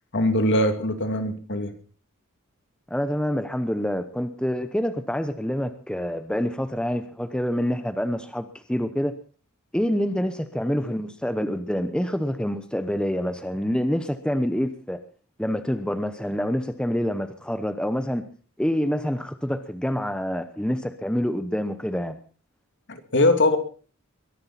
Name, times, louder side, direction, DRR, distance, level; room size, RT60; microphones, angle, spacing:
voice 1, 0.1-1.7 22.9-23.6, left 1 dB, 55° left, 7 dB, 2.4 m, -21 dB
voice 2, 2.9-9.1 9.7-15.0 15.4-18.3 18.6-22.2, equal, 5° left, 9 dB, 0.9 m, -27 dB
22.5 x 11.5 x 4.1 m, 0.38 s
head